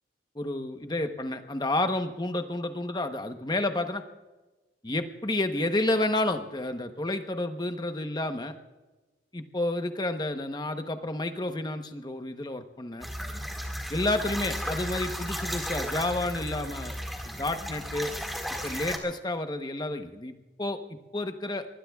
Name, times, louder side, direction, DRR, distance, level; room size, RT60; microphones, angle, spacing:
voice 1, 0.4-4.0 4.8-8.5 9.3-13.1 13.9-17.0 17.2-18.1 18.6-21.7, left 2 dB, 25° left, 7 dB, 0.9 m, -30 dB
sound 1, 13.0-19.0, equal, ahead, 1.9 m, -34 dB
24.5 x 20.5 x 2.4 m, 1.2 s
head